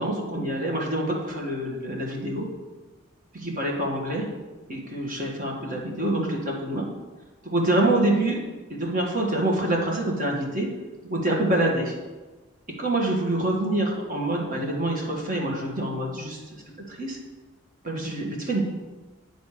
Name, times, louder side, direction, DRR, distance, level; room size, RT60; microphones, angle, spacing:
voice 1, 0.0-2.5 3.3-4.3 4.7-6.9 7.4-8.4 8.7-10.7 11.1-11.9 12.8-16.6 16.9-17.2 17.8-18.7, right 1 dB, 40° right, -1 dB, 1.6 m, -26 dB
10.5 x 4.2 x 5.0 m, 1.2 s
head